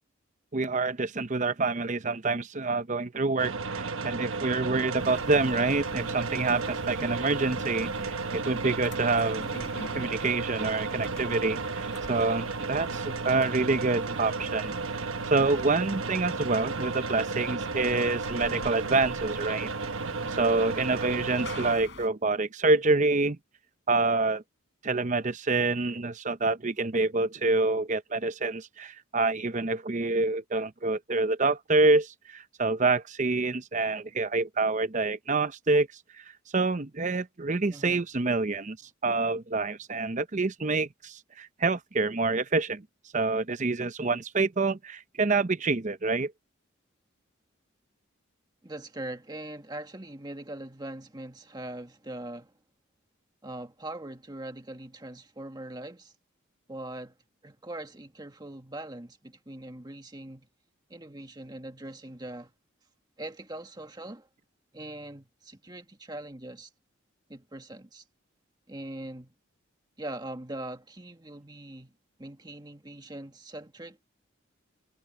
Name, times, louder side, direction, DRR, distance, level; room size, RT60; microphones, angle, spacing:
voice 1, 0.5-9.5 9.9-19.7 20.4-23.4 23.9-24.4 24.8-35.9 36.5-38.8 39.0-42.8 43.1-46.3, right 3 dB, 35° right, 0.7 m, -27 dB
sound 1, 3.4-21.8, right 4 dB, 85° right, 1.0 m, -33 dB
sound 2, 4.9-22.1, left 2 dB, 65° left, 3.8 m, -48 dB
voice 2, 9.4-9.7 37.7-38.0 48.6-52.5 53.4-56.1 56.7-57.1 57.4-60.5 60.9-62.5 63.2-64.3 64.7-66.7 67.3-68.0 68.7-69.3 70.0-71.9 72.2-74.0, right 1 dB, 20° right, 1.7 m, -41 dB
head